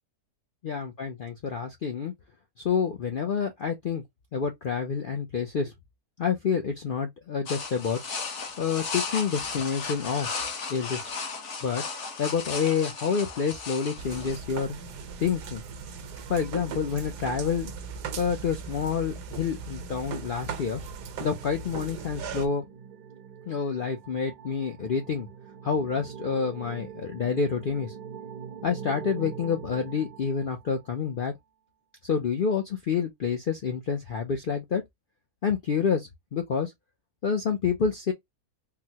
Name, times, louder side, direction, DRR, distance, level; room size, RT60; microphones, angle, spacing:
voice 1, 0.6-2.1 2.6-4.0 4.3-5.7 6.2-8.0 8.6-10.3 10.7-11.1 11.6-11.8 12.2-14.8 15.2-15.6 16.3-17.7 18.2-20.8 21.2-22.6 23.5-25.3 25.6-27.9 28.6-31.3 32.0-34.8 35.4-36.7 37.2-38.1, left 6 dB, 75° left, 0.4 m, -28 dB
sound 1, 7.5-14.4, left 4 dB, 55° left, 1.1 m, -35 dB
sound 2, 14.0-22.5, right 6 dB, 90° right, 1.3 m, -38 dB
sound 3, 20.7-30.9, right 8 dB, 65° right, 0.4 m, -44 dB
3.9 x 2.1 x 2.7 m
omnidirectional pair, 1.7 m